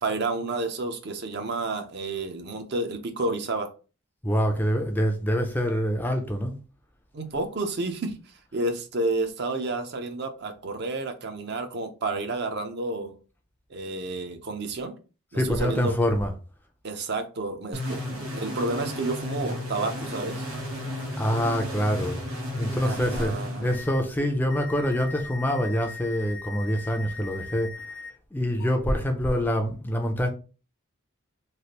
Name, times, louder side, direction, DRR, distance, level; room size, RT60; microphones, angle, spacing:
voice 1, 0.0-3.7 7.1-8.2 8.5-13.1 13.7-14.9 15.3-15.9 16.8-20.4 22.8-23.7, right 2 dB, 50° right, 0.5 m, -30 dB
voice 2, 4.2-6.5 15.4-16.3 21.2-22.2 22.6-27.7 28.3-30.3, equal, 10° left, 0.3 m, -25 dB
sound 1, 17.7-24.2, left 1 dB, 80° right, 0.9 m, -33 dB
sound 2, 23.7-24.0 24.5-28.1 28.6-28.8, left 4 dB, 70° left, 0.7 m, -40 dB
3.2 x 2.4 x 2.8 m
head